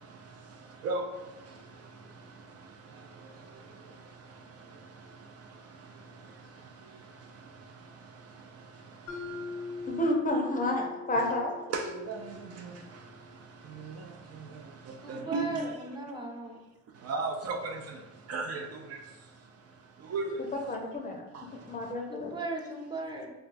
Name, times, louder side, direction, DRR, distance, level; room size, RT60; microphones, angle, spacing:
voice 1, 0.0-10.0 11.2-11.3 11.7-15.7 16.9-20.8 21.3-21.9, right 3 dB, 55° right, 3 dB, 0.4 m, -40 dB
Mallet percussion, 9.1-13.1, left 4 dB, 85° left, 0.5 m, -42 dB
voice 2, 9.9-11.5 20.5-21.2 21.7-22.4, left 1 dB, 25° left, 1 dB, 0.5 m, -30 dB
voice 3, 15.0-16.6 22.1-23.3, right 2 dB, 15° right, -1 dB, 0.6 m, -37 dB
2.3 x 2.2 x 3.8 m, 1.1 s
cardioid pair, 90°, 30 cm